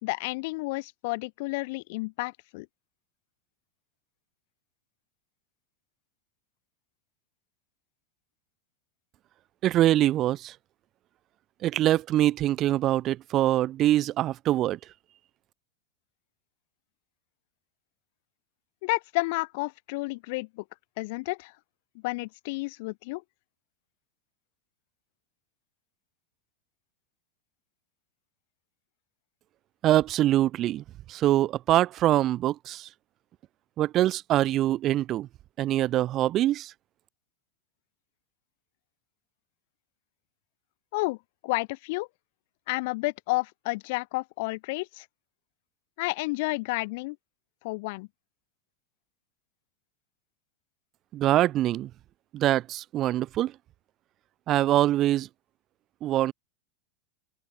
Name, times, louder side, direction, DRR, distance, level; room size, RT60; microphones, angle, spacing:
voice 1, 0.0-2.7 18.8-20.6 21.0-21.5 22.0-23.2 40.9-41.2 41.4-42.1 42.7-45.1 46.0-47.2 47.6-48.1, left 25 dB, 60° left, 0.7 m, -31 dB
voice 2, 9.6-10.5 11.6-14.8 29.8-32.9 33.8-35.3 35.6-36.7 51.1-51.9 52.3-53.5 54.5-55.3 56.0-56.3, right 13 dB, 35° right, 0.8 m, -24 dB
open air
supercardioid pair, 140°, 0 cm